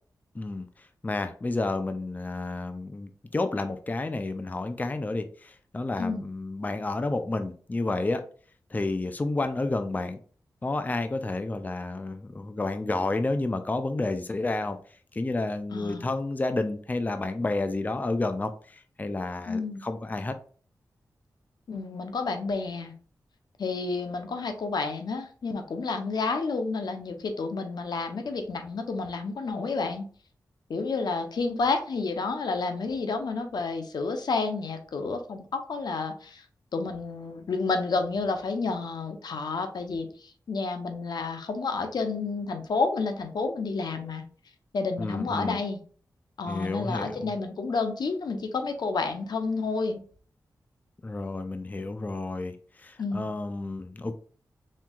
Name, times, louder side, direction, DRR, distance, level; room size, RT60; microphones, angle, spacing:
voice 1, 0.3-0.7 1.0-8.2 8.7-10.2 10.6-14.8 15.1-20.3 45.0-45.6 46.5-47.3 51.0-54.1, left 2 dB, 25° left, 8 dB, 0.4 m, -30 dB
voice 2, 15.7-16.0 19.5-19.9 21.7-22.9 23.6-30.1 30.7-36.4 36.7-44.2 44.7-45.8 46.4-50.0 53.0-53.3, left 4 dB, 75° left, 6 dB, 0.7 m, -30 dB
4.5 x 3.5 x 2.3 m, 0.43 s
cardioid pair, 70°, 7 cm